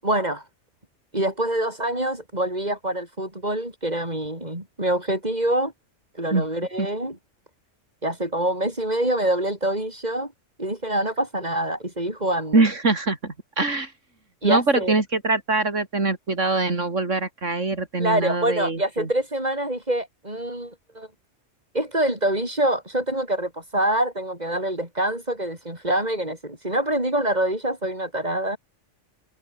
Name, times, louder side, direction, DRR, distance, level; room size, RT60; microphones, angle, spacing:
voice 1, 0.0-0.4 1.1-5.7 6.2-7.2 8.0-10.3 10.6-12.6 14.4-14.9 18.0-21.1 21.7-28.6, right 1 dB, 35° right, 7.6 m, -25 dB
voice 2, 12.5-13.9 14.4-19.1, right 3 dB, 80° right, 3.8 m, -23 dB
omnidirectional pair, 1.3 m